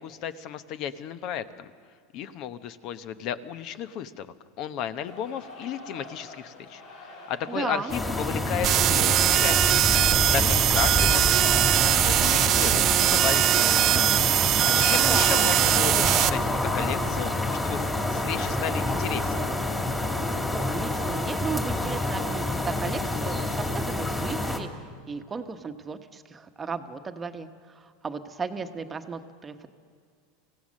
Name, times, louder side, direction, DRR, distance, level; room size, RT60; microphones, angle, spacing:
voice 1, 0.0-1.7 2.1-4.3 4.6-9.9 10.3-14.1 14.6-19.3, left 9 dB, 50° left, 12 dB, 0.9 m, -34 dB
sound 1, 5.0-23.6, left 2 dB, 75° left, 7.6 m, -49 dB
voice 2, 7.5-7.9 13.6-14.2 14.9-15.4 20.3-24.7 25.1-29.7, right 5 dB, 20° right, 7 dB, 1.1 m, -35 dB
sound 2, 7.9-24.6, left 2 dB, 10° left, 2.4 m, -28 dB
sound 3, 8.6-16.3, right 13 dB, 45° right, 0.6 m, -21 dB
26.0 x 16.0 x 6.5 m, 2.1 s
supercardioid pair, 125°, 0 cm